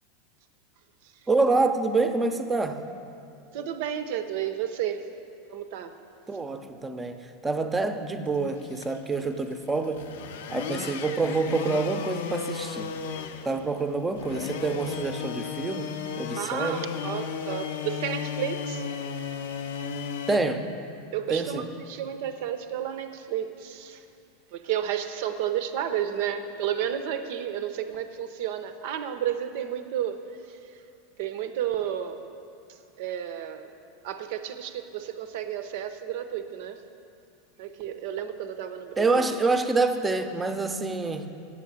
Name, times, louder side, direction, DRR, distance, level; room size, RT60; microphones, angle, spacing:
voice 1, 1.3-2.9 6.3-10.1 10.5-12.9 13.4-16.9 20.3-20.7 21.3-21.7 39.0-41.3, right 3 dB, 15° right, 8 dB, 0.6 m, -27 dB
voice 2, 3.5-5.1 5.5-5.9 16.4-18.8 21.1-24.1 24.5-30.8 31.2-32.3 32.7-33.7 34.0-36.8 37.6-39.3, right 10 dB, 55° right, 9 dB, 0.6 m, -32 dB
sound 1, 8.3-20.4, left 7 dB, 65° left, 0.5 m, -35 dB
8.3 x 7.3 x 7.2 m, 2.5 s
figure-of-eight pair, 85°, 0 cm